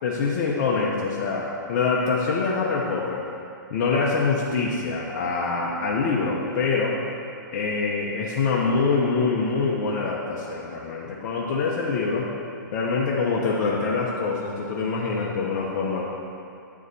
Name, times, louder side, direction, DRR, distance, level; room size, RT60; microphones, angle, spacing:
voice 1, 0.0-3.2 3.7-6.9 7.5-12.3 12.7-16.0, left 4 dB, 45° left, -3 dB, 0.9 m, -25 dB
9.2 x 4.9 x 4.1 m, 2.5 s
hypercardioid pair, 135°, 11 cm